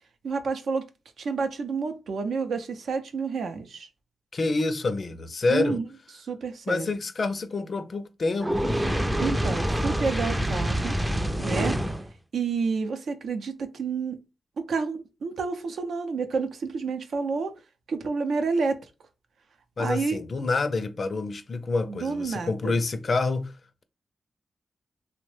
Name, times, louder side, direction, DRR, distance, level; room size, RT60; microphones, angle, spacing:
voice 1, 0.2-0.9 1.2-3.9 5.5-5.8 6.2-6.9 9.2-10.9 11.4-11.8 12.3-14.2 14.6-17.5 17.9-18.8 19.8-20.2 21.9-22.8, right 4 dB, 80° right, 0.5 m, -29 dB
voice 2, 4.3-5.8 6.7-8.7 19.8-23.5, left 3 dB, 55° left, 0.4 m, -27 dB
Fire, 8.4-12.1, equal, 10° right, 0.4 m, -26 dB
2.9 x 2.1 x 3.1 m
cardioid pair, 60°, 0 cm